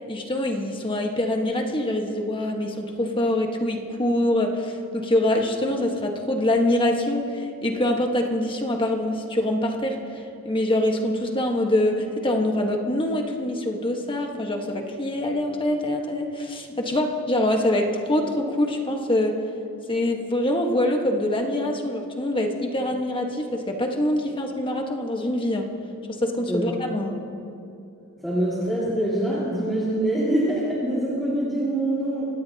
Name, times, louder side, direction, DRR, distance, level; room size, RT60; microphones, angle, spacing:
voice 1, 0.1-19.4 19.9-25.7 26.1-27.2, left 1 dB, 25° left, 2 dB, 1.4 m, -24 dB
voice 2, 28.2-32.3, right 1 dB, ahead, -9 dB, 2.4 m, -24 dB
25.5 x 17.5 x 2.9 m, 2.6 s
head